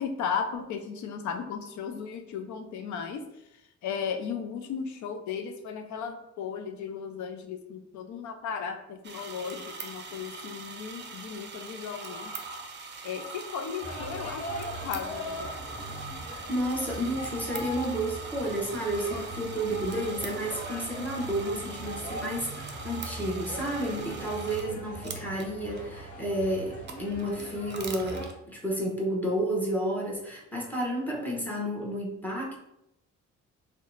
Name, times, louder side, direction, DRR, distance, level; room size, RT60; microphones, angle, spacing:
voice 1, 0.0-3.2 3.8-12.3 13.0-15.5, left 6 dB, 70° left, 6 dB, 0.6 m, -35 dB
sound 1, 9.0-24.7 25.0-25.8 26.5-28.3, right 3 dB, 35° right, 0.5 m, -41 dB
sound 2, 13.8-28.3, equal, 50° left, 1.1 m, -40 dB
voice 2, 16.5-32.6, right 1 dB, 5° left, -3 dB, 0.9 m, -31 dB
2.7 x 2.3 x 3.8 m, 0.84 s
cardioid pair, 90°, 30 cm